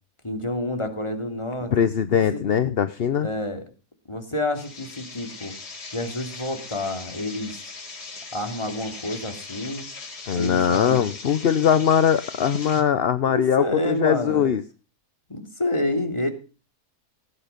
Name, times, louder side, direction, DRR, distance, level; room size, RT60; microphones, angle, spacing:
voice 1, 0.2-1.8 2.3-2.4 3.2-3.6 4.1-5.5 5.9-7.5 8.3-9.9 10.3-11.0 13.2-14.6 15.3-16.3, left 1 dB, 20° left, 5 dB, 2.9 m, -28 dB
voice 2, 1.7-3.3 10.3-14.6, left 8 dB, 50° left, 12 dB, 0.8 m, -21 dB
sound 1, 4.5-12.8, left 3 dB, 80° left, 3.1 m, -39 dB
17.5 x 9.1 x 5.2 m, 0.35 s
omnidirectional pair, 1.7 m